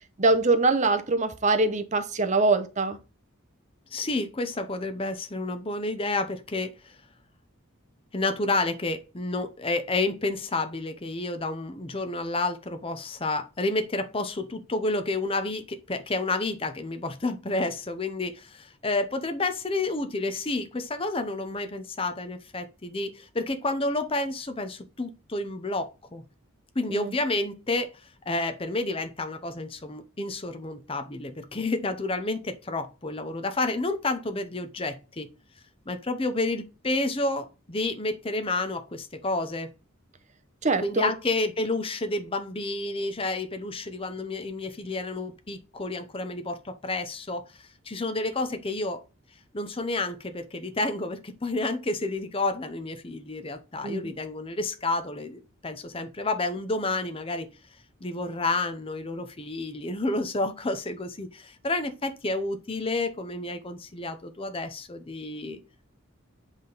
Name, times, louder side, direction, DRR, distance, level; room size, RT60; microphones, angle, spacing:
voice 1, 0.2-3.0 26.9-27.1 40.6-41.1 53.8-54.1, right 3 dB, 35° right, 0.7 m, -23 dB
voice 2, 3.9-7.0 8.1-26.2 26.7-27.9 28.3-35.3 35.9-39.7 40.8-49.0 49.5-57.5 58.0-65.6, left 2 dB, 25° left, 0.7 m, -30 dB
8.1 x 3.5 x 4.0 m
head